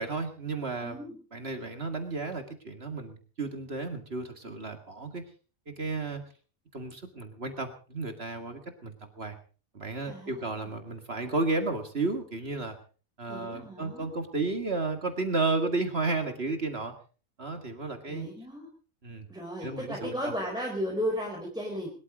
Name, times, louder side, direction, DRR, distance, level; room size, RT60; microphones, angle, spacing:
voice 1, 0.0-1.0 1.3-5.2 5.7-6.2 6.7-9.4 9.7-12.8 13.2-16.9 17.4-18.3 19.0-19.3 19.6-20.3, right 3 dB, 45° right, 6 dB, 2.2 m, -33 dB
voice 2, 0.8-1.2 10.0-10.7 13.3-14.1 18.1-18.7 19.3-21.9, equal, 5° right, -1 dB, 4.4 m, -35 dB
21.5 x 13.0 x 5.0 m, 0.39 s
omnidirectional pair, 1.5 m